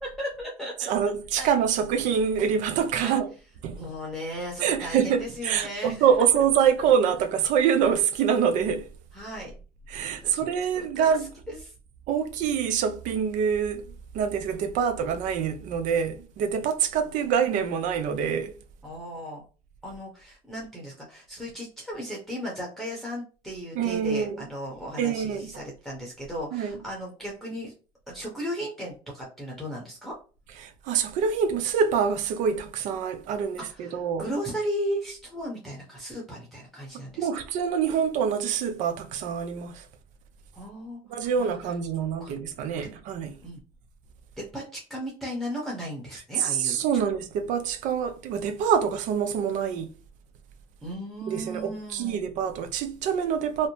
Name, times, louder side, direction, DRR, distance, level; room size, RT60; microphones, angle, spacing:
voice 1, 0.0-0.9 1.4-1.5 3.0-3.1 3.8-6.0 9.1-9.5 10.0-10.4 10.7-11.1 11.5-11.7 18.8-19.4 19.8-27.7 28.1-30.1 33.7-37.4 40.5-41.0 41.4-41.5 42.2-42.3 42.8-42.9 43.4-43.6 44.5-47.0 50.8-52.2, equal, ahead, 0.8 m, -36 dB
voice 2, 0.8-3.3 3.6-3.8 4.6-8.9 9.9-11.3 12.1-18.5 23.7-24.5 25.0-25.5 26.5-26.8 30.6-34.3 37.2-39.9 41.1-43.3 46.4-49.9 51.3-53.7, right 7 dB, 60° right, 0.5 m, -25 dB
2.7 x 2.0 x 2.9 m
supercardioid pair, 105°, 14 cm